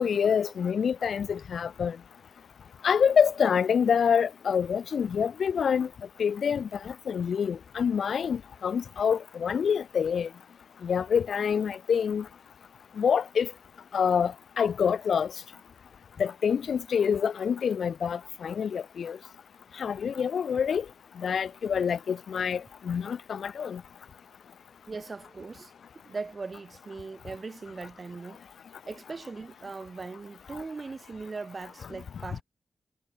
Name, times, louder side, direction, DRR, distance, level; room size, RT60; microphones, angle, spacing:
voice 1, 0.0-2.0 2.8-5.9 6.2-10.3 10.8-12.3 13.0-13.5 13.9-15.3 16.2-19.2 19.8-20.8 21.2-23.8, left 7 dB, 85° left, 0.8 m, -26 dB
voice 2, 24.9-25.7 26.0-28.4 28.9-32.4, right 4 dB, 45° right, 3.6 m, -39 dB
cardioid pair, 75°, 0 cm